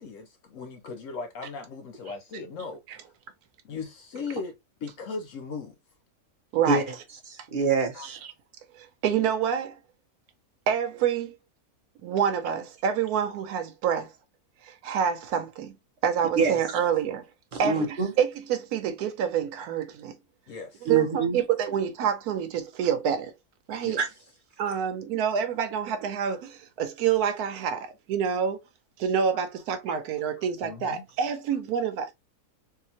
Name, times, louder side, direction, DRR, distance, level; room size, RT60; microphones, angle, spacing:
voice 1, 0.0-2.8 3.6-4.6 4.8-5.7 7.9-8.1 16.4-16.6 20.5-20.9 23.8-24.0 30.4-31.0, left 4 dB, 70° left, 0.9 m, -38 dB
voice 2, 6.5-6.8 8.0-8.3 8.8-9.7 10.7-11.4 12.0-14.1 14.6-15.7 16.0-17.2 17.6-20.2 20.9-23.3 23.7-24.0 24.6-28.6 29.0-32.1, right 8 dB, 90° right, 1.1 m, -27 dB
voice 3, 7.3-8.2 16.4-16.5 17.5-18.1 20.9-21.4 24.0-24.1, right 4 dB, 45° right, 0.7 m, -25 dB
3.7 x 2.8 x 2.7 m
omnidirectional pair, 1.6 m